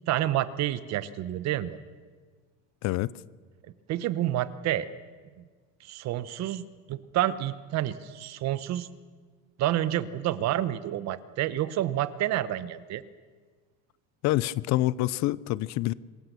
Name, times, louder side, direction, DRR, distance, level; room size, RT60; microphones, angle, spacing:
voice 1, 0.1-1.8 3.9-4.9 5.8-6.6 6.9-8.9 9.6-13.0, right 13 dB, 50° right, 15 dB, 1.0 m, -29 dB
voice 2, 14.2-15.9, left 16 dB, 50° left, 20 dB, 0.6 m, -26 dB
26.0 x 15.0 x 6.8 m, 1.5 s
cardioid pair, 130°, 35 cm